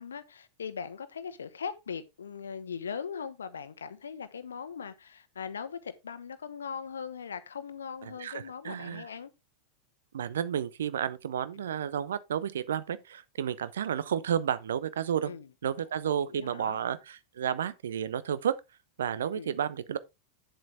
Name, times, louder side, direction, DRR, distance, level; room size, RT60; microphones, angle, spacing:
voice 1, 0.0-9.3 11.6-11.7 15.2-15.5 16.0-16.8 19.3-19.6, left 6 dB, 70° left, 1.0 m, -40 dB
voice 2, 8.2-9.0 10.1-15.3 15.6-18.6 19.0-20.0, right 9 dB, 65° right, 0.9 m, -31 dB
9.4 x 7.7 x 3.3 m
figure-of-eight pair, 90°, 0 cm